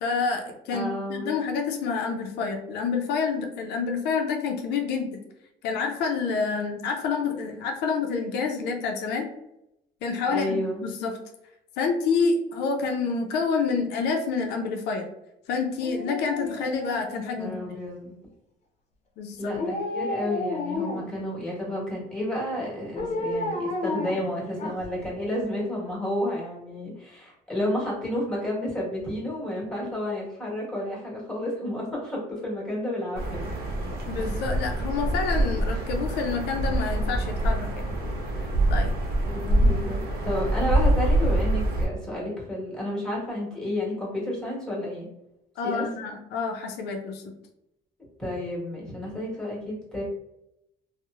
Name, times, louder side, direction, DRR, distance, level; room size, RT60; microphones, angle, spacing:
voice 1, 0.0-5.2 5.6-9.3 10.0-11.2 11.8-15.1 15.5-17.8 19.2-19.5 34.1-37.9 38.7-38.9 45.6-47.3, left 5 dB, 80° left, 3 dB, 0.4 m, -28 dB
voice 2, 0.7-1.3 10.3-10.9 17.1-18.2 19.4-33.5 39.2-45.1 45.6-45.8 48.2-50.0, left 1 dB, 5° left, -5 dB, 1.3 m, -31 dB
Dog, 15.8-17.8 19.5-21.2 23.0-25.1 25.4-25.5, left 2 dB, 40° left, 0.7 m, -32 dB
sound 1, 33.1-41.9, right 1 dB, 65° right, 0.6 m, -25 dB
2.9 x 2.0 x 2.3 m, 0.85 s
cardioid pair, 110°, 17 cm